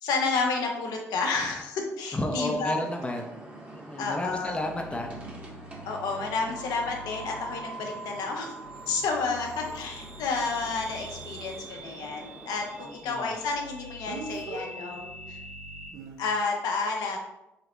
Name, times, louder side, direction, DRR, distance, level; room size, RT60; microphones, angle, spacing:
voice 1, 0.0-2.8 4.0-4.6 5.8-8.5 8.9-15.4 16.2-17.2, left 4 dB, 65° left, 1 dB, 0.6 m, -30 dB
voice 2, 2.1-3.3 3.7-5.1 12.8-13.3, left 1 dB, 15° left, 3 dB, 0.6 m, -32 dB
sound 1, 2.6-12.8, right 1 dB, 20° right, 1.1 m, -46 dB
sound 2, 4.3-15.9, right 2 dB, 90° right, 0.4 m, -44 dB
Speech, 8.8-8.9 14.1-14.7 15.9-16.2, right 4 dB, 55° right, 0.6 m, -38 dB
3.9 x 3.3 x 2.9 m, 0.91 s
figure-of-eight pair, 45°, 7 cm